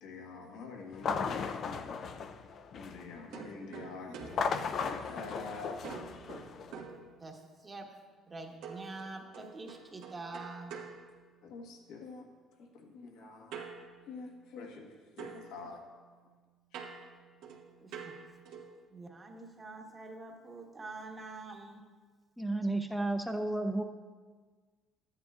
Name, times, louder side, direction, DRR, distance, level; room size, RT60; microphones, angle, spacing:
voice 1, 0.0-1.9 2.7-5.8 11.4-12.3 12.6-13.5 14.1-15.9, left 4 dB, 80° left, 1 dB, 1.4 m, -46 dB
sound 1, 0.9-3.2 4.2-6.7, left 5 dB, 45° left, 0.4 m, -36 dB
sound 2, 3.3-5.4 5.8-7.7 8.6-11.8 13.5-14.9 15.2-18.8, right 5 dB, 80° right, 1.3 m, -48 dB
voice 2, 7.2-7.9 8.3-10.7 17.8-18.1 18.9-21.8, right 3 dB, 20° right, 2 dB, 1.1 m, -46 dB
voice 3, 22.4-23.8, right 2 dB, ahead, 6 dB, 0.6 m, -32 dB
13.0 x 9.7 x 2.4 m, 1.5 s
cardioid pair, 130°, 0 cm